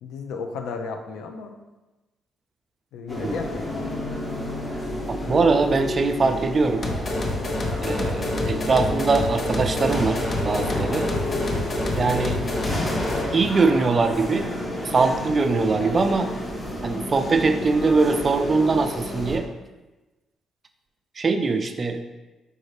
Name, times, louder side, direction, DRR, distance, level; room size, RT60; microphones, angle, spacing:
voice 1, 0.0-1.6 2.9-3.8, left 4 dB, 85° left, 5 dB, 0.4 m, -33 dB
sound 1, 3.1-19.4, left 1 dB, 20° left, 0.9 m, -30 dB
voice 2, 5.1-6.8 7.8-11.1 11.9-12.4 13.3-14.5 14.8-16.3 16.8-19.5 21.2-22.0, right 4 dB, 35° right, 7 dB, 0.3 m, -22 dB
sound 2, 6.8-13.3, left 2 dB, 40° left, 0.6 m, -28 dB
5.0 x 2.6 x 3.2 m, 1.1 s
cardioid pair, 90°, 0 cm